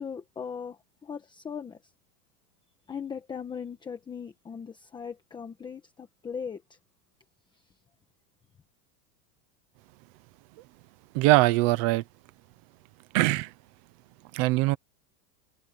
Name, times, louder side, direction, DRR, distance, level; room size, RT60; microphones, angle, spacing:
voice 1, 0.0-1.9 2.9-6.8 7.5-7.6, left 6 dB, 10° left, 1.1 m, -39 dB
voice 2, 11.1-12.0 13.1-13.5 14.3-14.8, right 20 dB, 20° right, 0.5 m, -22 dB
supercardioid pair, 170°, 50 cm